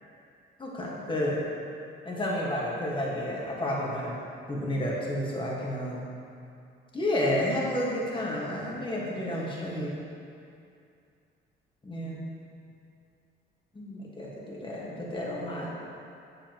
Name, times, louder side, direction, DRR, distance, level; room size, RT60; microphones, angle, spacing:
voice 1, 0.6-1.4 2.0-4.1 4.5-6.1 6.9-10.0 11.8-12.2 13.7-15.7, left 1 dB, 25° left, -4 dB, 1.5 m, -31 dB
8.0 x 7.1 x 3.0 m, 2.5 s
cardioid pair, 90°, 20 cm